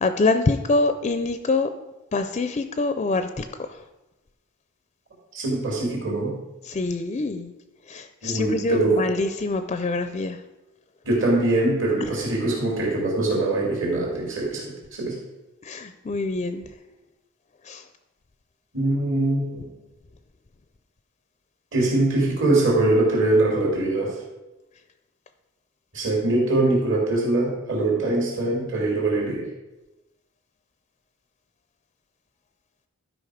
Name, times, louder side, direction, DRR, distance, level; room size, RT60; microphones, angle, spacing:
voice 1, 0.0-1.7 2.1-3.7 6.7-7.5 7.9-10.4 15.6-16.6 17.7-17.8, left 3 dB, 30° left, 9 dB, 0.4 m, -25 dB
voice 2, 5.3-6.3 8.2-9.0 11.0-15.2 18.7-19.7 21.7-24.2 25.9-29.5, right 2 dB, 60° right, -2 dB, 2.9 m, -23 dB
12.0 x 5.2 x 5.0 m, 1.0 s
head